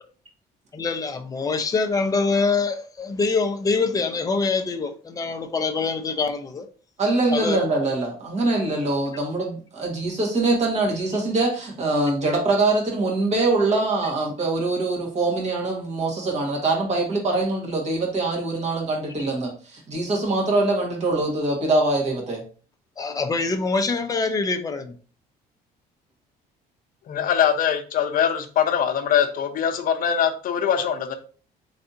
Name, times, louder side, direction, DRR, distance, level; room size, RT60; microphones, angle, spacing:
voice 1, 0.7-6.6 7.3-7.6 23.0-24.9, left 4 dB, 20° left, 0.6 m, -24 dB
voice 2, 7.0-22.4, right 2 dB, 40° right, 1.8 m, -23 dB
voice 3, 27.1-31.1, left 8 dB, 55° left, 0.7 m, -22 dB
4.1 x 3.3 x 2.7 m
cardioid pair, 110°, 17 cm